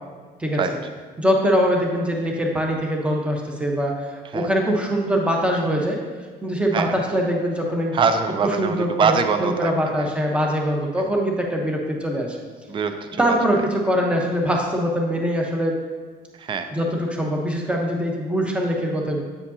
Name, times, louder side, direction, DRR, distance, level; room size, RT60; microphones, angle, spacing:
voice 1, 1.2-6.0 6.4-8.0 8.4-9.1 9.4-12.4 13.2-15.8 16.7-19.2, equal, 5° right, 0 dB, 0.9 m, -23 dB
voice 2, 7.9-9.7 10.0-10.1 11.0-11.1 12.7-13.4 16.3-16.7, right 5 dB, 30° right, 8 dB, 0.4 m, -23 dB
8.2 x 5.1 x 2.7 m, 1.5 s
cardioid pair, 110°, 17 cm